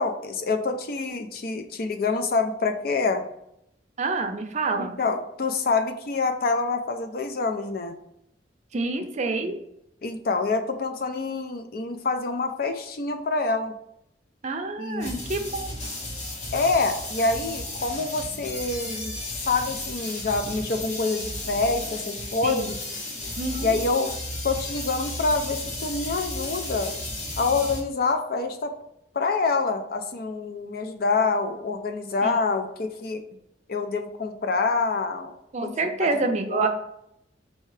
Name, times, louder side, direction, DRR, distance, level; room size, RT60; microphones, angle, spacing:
voice 1, 0.0-3.2 4.8-8.0 10.0-13.7 14.8-15.1 16.5-22.8 23.6-24.1 24.4-26.9 27.4-28.7 29.1-33.2 33.7-35.3 35.6-35.7 36.0-36.2 36.5-36.7, left 3 dB, 60° left, 7 dB, 0.5 m, -26 dB
voice 2, 4.0-5.0 8.7-9.6 14.4-15.7 22.4-22.7 23.4-23.7 32.2-32.3 35.5-36.7, right 3 dB, 40° right, 6 dB, 0.5 m, -27 dB
sound 1, 15.0-27.8, left 1 dB, 40° left, 0.9 m, -34 dB
4.5 x 2.7 x 3.2 m, 0.78 s
head